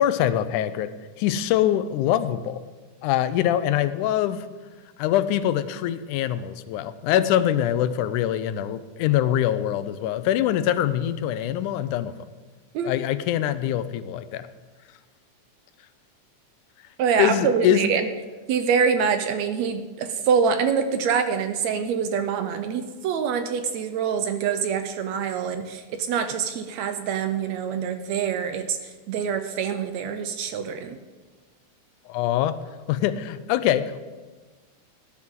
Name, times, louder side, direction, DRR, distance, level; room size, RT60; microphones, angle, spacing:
voice 1, 0.0-2.6 3.0-4.5 5.0-12.1 12.8-14.5 17.2-17.9 32.1-32.6 32.9-34.0, left 11 dB, 85° left, 13 dB, 2.1 m, -24 dB
voice 2, 17.0-18.1 18.5-31.0, right 6 dB, 75° right, 8 dB, 1.8 m, -25 dB
18.0 x 11.0 x 3.7 m, 1.3 s
omnidirectional pair, 3.5 m